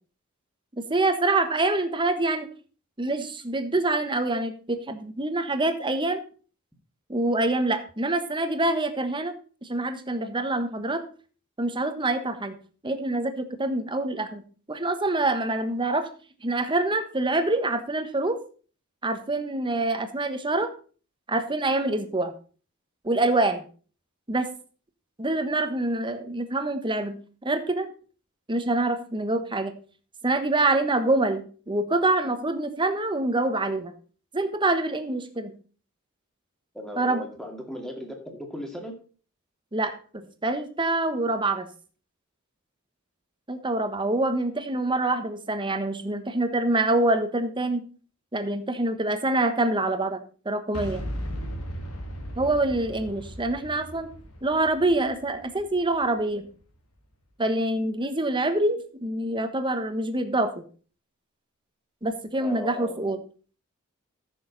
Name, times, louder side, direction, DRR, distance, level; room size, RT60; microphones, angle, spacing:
voice 1, 0.8-2.5 3.0-6.2 7.1-9.3 9.6-11.0 11.6-12.6 12.8-16.1 16.4-18.4 19.0-20.7 21.3-22.3 23.0-23.6 24.3-24.5 25.2-27.2 27.4-27.9 28.5-29.7 30.2-33.9 34.3-35.5 37.0-37.3 39.7-41.7 43.5-47.8 48.3-50.2 50.4-51.0 52.4-54.1 54.4-56.5 57.4-60.6 62.0-63.2, right 2 dB, 25° right, 8 dB, 1.2 m, -26 dB
voice 2, 36.7-38.9 62.4-63.0, equal, ahead, 2 dB, 2.2 m, -37 dB
Boom, 50.7-56.6, equal, 85° left, 2.2 m, -37 dB
14.0 x 6.6 x 4.0 m, 0.39 s
head